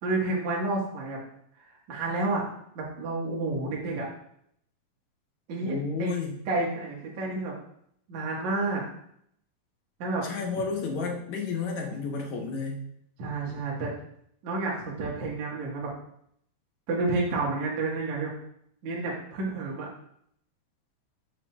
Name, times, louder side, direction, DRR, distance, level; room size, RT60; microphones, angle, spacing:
voice 1, 0.0-1.2 1.6-2.4 2.8-4.1 5.5-6.1 6.5-7.5 8.1-8.8 10.0-10.2 13.2-13.9 14.4-15.9 16.9-18.3 18.8-19.9, right 3 dB, 60° right, -3 dB, 2.8 m, -30 dB
voice 2, 5.6-6.4 10.2-12.9, left 5 dB, 65° left, 1 dB, 2.3 m, -31 dB
14.0 x 6.0 x 2.4 m, 0.70 s
omnidirectional pair, 3.9 m